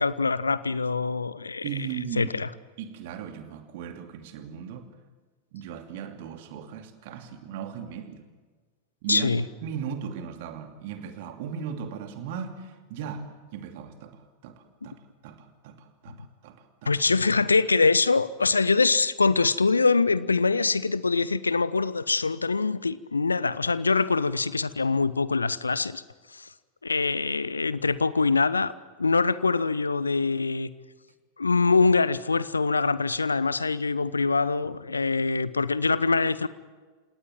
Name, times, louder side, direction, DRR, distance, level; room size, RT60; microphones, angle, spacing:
voice 1, 0.0-1.7 2.2-2.5 9.1-9.4 16.9-26.0 26.3-26.5 26.8-28.7 29.0-30.7 31.4-36.5, left 4 dB, 80° left, 0.8 m, -24 dB
voice 2, 1.6-2.3 2.8-4.9 5.5-8.2 9.0-9.3 9.6-17.0, right 8 dB, 50° right, 2.7 m, -37 dB
29.5 x 18.5 x 7.4 m
figure-of-eight pair, 90°, 0 cm